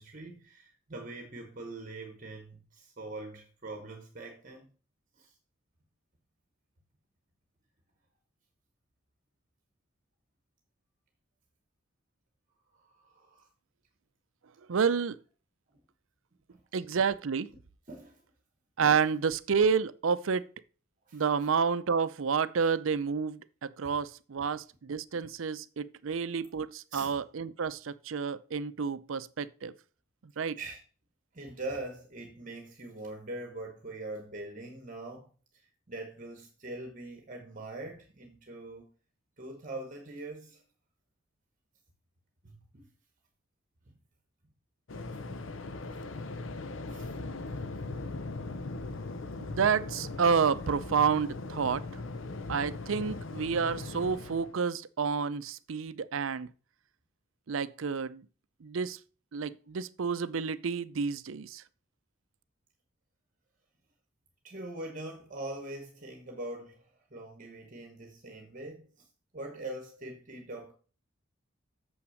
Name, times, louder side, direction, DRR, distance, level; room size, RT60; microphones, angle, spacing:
voice 1, 0.0-4.7 5.2-5.3 12.7-13.5 16.5-16.6 17.9-18.2 21.1-21.2 23.8-24.0 26.9-27.1 30.6-30.8 31.3-35.3 35.9-38.9 39.4-40.6 42.4-42.9 45.9-46.0 46.9-47.1 64.4-69.1 69.3-70.7, right 2 dB, 40° right, 1.1 m, -43 dB
voice 2, 14.7-15.2 16.7-17.5 18.8-20.5 21.1-29.7 30.4-30.6 49.4-51.8 52.5-56.5 57.5-58.2 58.6-59.0 59.3-61.6, right 6 dB, 75° right, 0.5 m, -29 dB
Waves surf, 44.9-54.6, left 3 dB, 70° left, 0.7 m, -39 dB
7.2 x 5.9 x 6.3 m
head